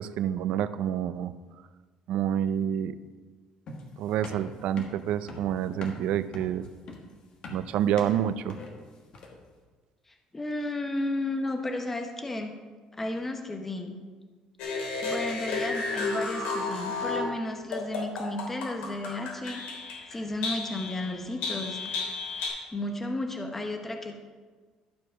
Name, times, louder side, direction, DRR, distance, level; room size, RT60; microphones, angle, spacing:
voice 1, 0.0-1.3 2.1-3.0 4.0-6.7 7.5-8.6, right 10 dB, 65° right, 13 dB, 0.5 m, -28 dB
sound 1, 3.7-9.5, left 2 dB, 45° left, 1.5 m, -43 dB
voice 2, 10.1-12.5 12.9-14.0 14.7-19.8 20.1-21.8 22.7-24.2, left 2 dB, 15° left, 4 dB, 0.9 m, -33 dB
sound 2, 14.6-17.3 17.7-20.1 20.4-22.5, left 3 dB, 85° left, 3.0 m, -32 dB
12.0 x 4.8 x 6.3 m, 1.4 s
cardioid pair, 155°, 2 cm